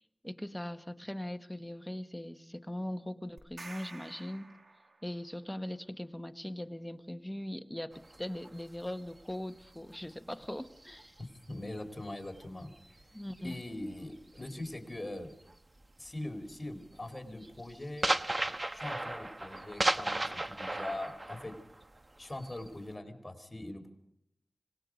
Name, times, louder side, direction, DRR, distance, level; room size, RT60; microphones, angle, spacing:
voice 1, 0.2-4.5 5.0-11.1 13.1-13.6, left 1 dB, 10° left, 8 dB, 1.3 m, -40 dB
sound 1, 3.4-5.3, right 3 dB, 70° right, 2.5 m, -50 dB
sound 2, 7.9-11.8 12.1-15.5 15.8-16.2 16.5-22.9, right 2 dB, 35° right, 1.1 m, -36 dB
voice 2, 11.5-12.7 13.4-15.3 16.0-18.1 18.7-21.5 22.2-23.9, left 1 dB, 30° left, 4 dB, 4.2 m, -42 dB
26.5 x 19.0 x 5.2 m, 0.76 s
cardioid pair, 45°, 0 cm